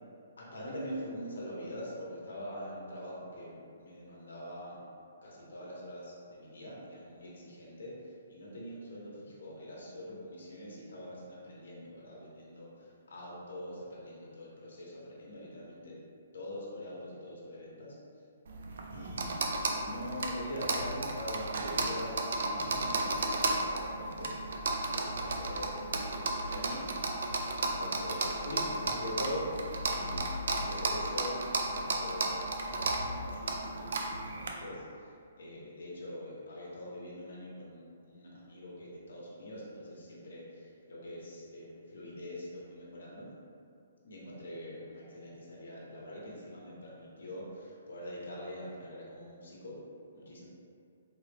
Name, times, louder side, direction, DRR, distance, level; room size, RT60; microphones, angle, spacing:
voice 1, 0.4-4.8 5.2-7.9 8.3-16.0 16.3-18.0 18.9-19.4 19.8-24.5 24.9-26.9 27.1-27.2 27.6-29.6 29.9-32.3 32.6-34.8 35.4-43.3 44.0-49.7 50.1-50.5, left 1 dB, 85° left, -5 dB, 0.9 m, -43 dB
sound 1, 18.5-34.5, right 2 dB, 60° right, 0.3 m, -34 dB
3.7 x 2.0 x 3.3 m, 2.4 s
hypercardioid pair, 175°, 0 cm